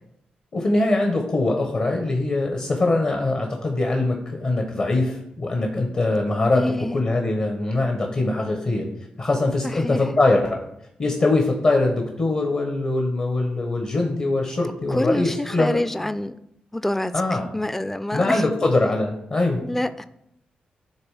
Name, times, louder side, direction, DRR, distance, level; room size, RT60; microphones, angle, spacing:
voice 1, 0.5-6.6 6.9-8.9 9.2-10.6 11.0-15.8 17.1-17.5 18.1-19.6, left 2 dB, 50° left, 2 dB, 1.1 m, -22 dB
voice 2, 6.5-7.0 9.6-10.1 14.9-16.3 16.7-17.1 17.5-18.4 19.6-20.1, left 1 dB, 10° left, 13 dB, 0.4 m, -26 dB
8.9 x 3.2 x 4.9 m, 0.79 s
supercardioid pair, 40°, 3 cm